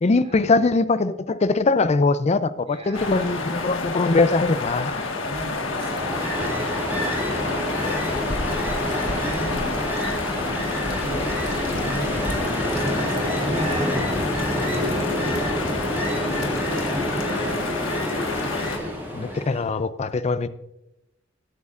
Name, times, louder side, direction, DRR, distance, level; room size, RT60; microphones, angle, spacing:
voice 1, 0.0-4.9 19.1-20.5, left 3 dB, 35° left, 0.4 m, -21 dB
voice 2, 2.7-3.4 5.0-8.1 8.5-9.5 10.2-12.2 12.7-14.1 14.5-15.4 16.2-17.7, right 1 dB, 35° right, 2.6 m, -35 dB
sound 1, 2.9-18.8, left 3 dB, 80° left, 1.5 m, -29 dB
Ocean, 5.6-19.7, equal, 10° right, 2.0 m, -28 dB
19.5 x 8.4 x 2.5 m
head